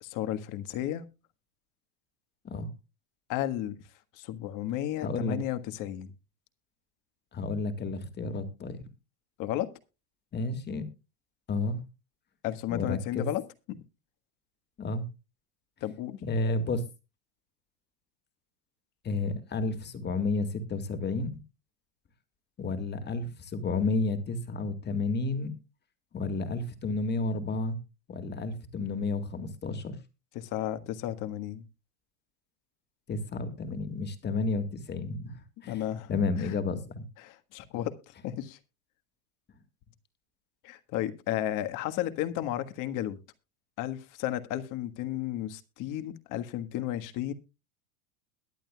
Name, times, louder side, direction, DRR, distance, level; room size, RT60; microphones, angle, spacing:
voice 1, 0.0-1.0 3.3-3.8 4.1-6.1 9.4-9.7 12.4-13.8 15.8-16.2 30.3-31.6 35.7-36.1 36.4-36.5 37.2-38.6 40.6-43.2 43.8-47.3, left 12 dB, 45° left, 1.5 m, -33 dB
voice 2, 5.0-5.4 7.3-8.8 10.3-10.8 11.5-11.8 12.7-13.3 14.8-15.0 16.2-16.8 19.0-21.3 22.6-25.5 26.1-27.8 28.1-30.0 33.1-35.4 35.6-35.8 36.1-37.0, left 3 dB, 25° left, 2.0 m, -31 dB
22.0 x 9.1 x 2.3 m
supercardioid pair, 125°, 43 cm